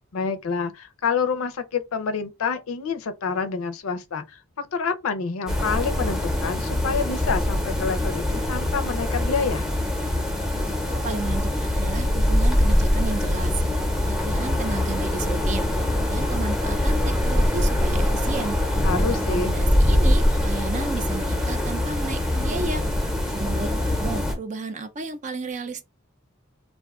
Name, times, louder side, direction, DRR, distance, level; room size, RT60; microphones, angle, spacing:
voice 1, 0.1-9.7 18.8-19.5, left 5 dB, 80° left, 0.5 m, -28 dB
sound 1, 5.5-24.3, left 1 dB, 5° right, 0.7 m, -23 dB
voice 2, 10.6-13.6 14.0-15.7 16.1-18.6 19.0-22.8 23.3-25.8, right 3 dB, 35° right, 0.4 m, -33 dB
2.5 x 2.2 x 3.5 m
head